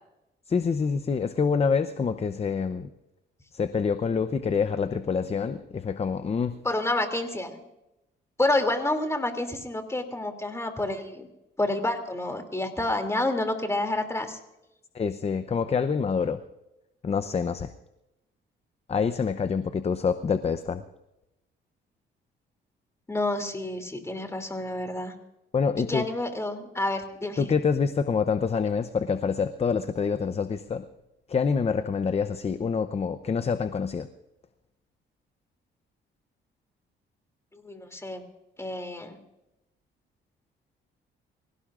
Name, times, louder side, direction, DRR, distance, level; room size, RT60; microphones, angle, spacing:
voice 1, 0.5-2.9 3.5-6.6 14.9-16.4 17.0-17.7 18.9-20.8 25.5-26.1 27.4-30.9 31.3-34.1, left 5 dB, 30° left, 11 dB, 0.7 m, -26 dB
voice 2, 6.6-7.6 8.4-11.3 11.6-14.4 23.1-25.1 25.9-27.5 37.5-38.2 38.6-39.2, left 2 dB, 15° left, 6 dB, 2.8 m, -29 dB
25.0 x 16.5 x 2.5 m, 0.92 s
cardioid pair, 90°, 20 cm